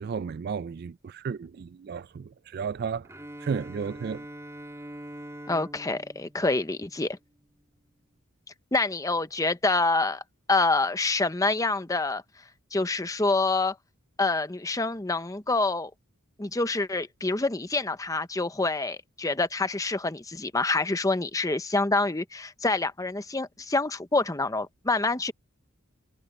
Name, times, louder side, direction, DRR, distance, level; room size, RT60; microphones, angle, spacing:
voice 1, 0.0-3.1 3.4-4.3, right 6 dB, 45° right, 0.3 m, -33 dB
Bowed string instrument, 3.0-7.1, right 1 dB, 15° right, 2.9 m, -44 dB
voice 2, 5.5-7.2 8.7-10.2 10.5-12.2 12.7-13.8 14.2-15.9 16.4-25.3, left 3 dB, 15° left, 0.8 m, -26 dB
head